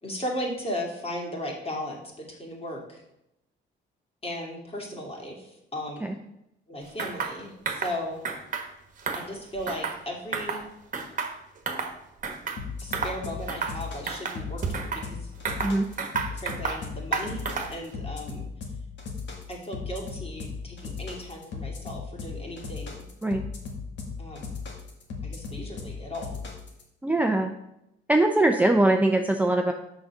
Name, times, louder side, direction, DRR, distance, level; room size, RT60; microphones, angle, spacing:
voice 1, 0.0-3.0 4.2-6.1 6.7-8.2 9.1-10.6 12.8-15.3 16.3-17.4 17.7-18.5 19.5-23.0 24.2-24.5 25.2-26.4, left 1 dB, 30° left, 0 dB, 2.5 m, -36 dB
sound 1, 7.0-7.4 7.7-8.0 8.2-8.7 9.0-10.0 10.3-10.6 10.9-11.9 12.2-12.6 12.9-13.2 13.5-13.8 14.1-15.0 15.5-16.8 17.1-17.8, right 5 dB, 40° right, 1.3 m, -31 dB
sound 2, 12.6-26.8, left 4 dB, 65° left, 1.9 m, -36 dB
voice 2, 27.0-27.5 28.1-29.7, right 2 dB, 5° right, 3 dB, 0.6 m, -22 dB
6.2 x 5.2 x 6.0 m, 0.84 s
cardioid pair, 90°, 20 cm